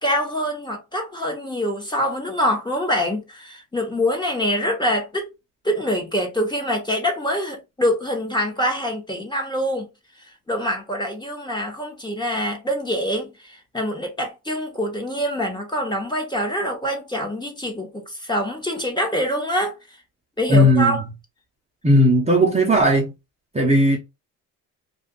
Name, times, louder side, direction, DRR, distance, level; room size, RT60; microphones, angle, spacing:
voice 1, 0.0-5.3 5.6-9.9 10.5-19.7 20.4-21.0, equal, 10° left, 1.1 m, -25 dB
voice 2, 20.5-21.0 21.8-23.1 23.5-24.0, equal, 15° right, 0.8 m, -16 dB
2.6 x 2.4 x 3.7 m
cardioid pair, 85°, 37 cm